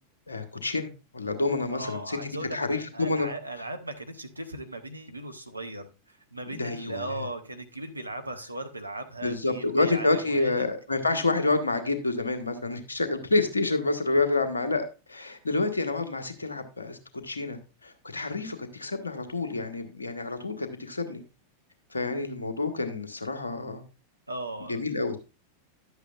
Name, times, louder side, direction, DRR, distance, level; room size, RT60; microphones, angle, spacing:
voice 1, 0.3-0.9 1.1-3.3 6.5-7.2 9.2-17.0 17.2-21.2 21.9-23.8 24.7-25.2, left 3 dB, 75° left, 7 dB, 1.2 m, -28 dB
voice 2, 1.7-5.9 6.3-10.7 24.3-24.8, right 1 dB, 85° right, 6 dB, 1.1 m, -37 dB
11.0 x 8.1 x 2.4 m, 0.30 s
figure-of-eight pair, 90°, 0 cm